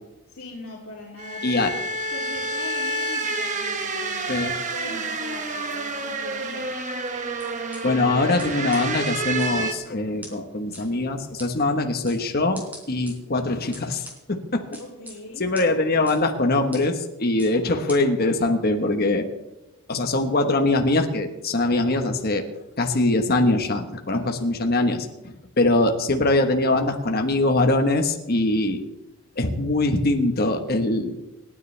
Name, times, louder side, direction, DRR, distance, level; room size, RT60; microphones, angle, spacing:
voice 1, 0.3-1.7 2.1-6.7 14.8-15.4 24.1-24.4, left 2 dB, 70° left, -5 dB, 2.9 m, -41 dB
sound 1, 1.2-9.7, right 2 dB, 35° right, 1.2 m, -29 dB
sound 2, 7.4-7.8 8.4-8.5 8.7-8.8 9.4-9.8 10.2-10.3 10.7-10.8 11.4-11.5 12.1-12.2 12.5-13.1 13.7-14.2 14.7-15.1 15.5-15.7 16.1-16.2 16.7-16.8 17.4-17.5 17.9-18.0, equal, 10° right, 3.8 m, -40 dB
voice 2, 7.8-12.6 12.9-14.6 15.4-19.2 19.9-22.4 22.8-28.8 29.4-31.2, left 2 dB, 45° left, 4 dB, 1.3 m, -22 dB
28.0 x 9.8 x 3.4 m, 0.98 s
head